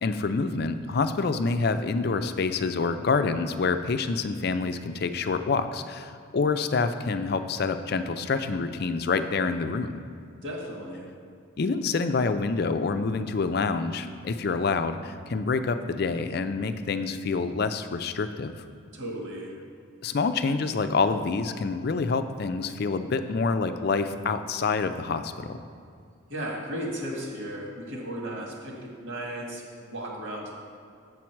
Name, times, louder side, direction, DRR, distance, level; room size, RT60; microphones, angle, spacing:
voice 1, 0.0-10.0 11.6-18.5 20.0-25.6, left 4 dB, 50° left, 10 dB, 0.4 m, -27 dB
voice 2, 10.4-11.1 18.9-19.5 26.3-30.5, right 1 dB, 65° right, -2 dB, 1.9 m, -35 dB
7.9 x 7.3 x 4.5 m, 2.3 s
head